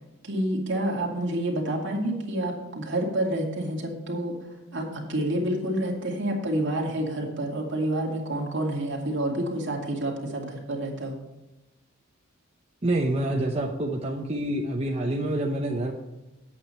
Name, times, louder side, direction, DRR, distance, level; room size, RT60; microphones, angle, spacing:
voice 1, 0.2-4.4 4.7-11.2, right 1 dB, 60° right, -1 dB, 2.5 m, -28 dB
voice 2, 12.8-15.9, right 1 dB, 30° right, -1 dB, 0.9 m, -27 dB
9.3 x 8.5 x 4.4 m, 1.0 s
head